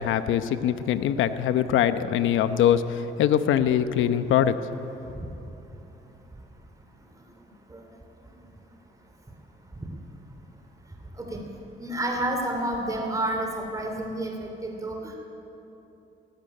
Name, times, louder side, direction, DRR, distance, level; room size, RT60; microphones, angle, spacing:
voice 1, 0.0-4.5, left 10 dB, 85° left, 11 dB, 0.9 m, -23 dB
voice 2, 11.8-15.2, right 1 dB, 15° right, 2 dB, 2.9 m, -30 dB
17.5 x 16.0 x 9.9 m, 3.0 s
cardioid pair, 90°, 20 cm